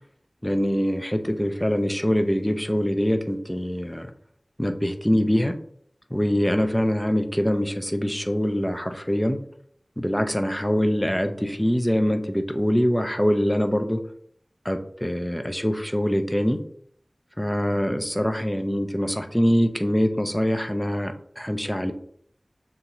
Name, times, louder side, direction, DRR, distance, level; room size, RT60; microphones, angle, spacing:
voice 1, 0.4-4.1 4.6-5.6 6.1-9.4 10.0-14.0 14.6-16.6 17.4-21.9, equal, 10° left, 6 dB, 0.5 m, -24 dB
6.7 x 2.5 x 2.9 m, 0.64 s
wide cardioid pair, 55°, 0 cm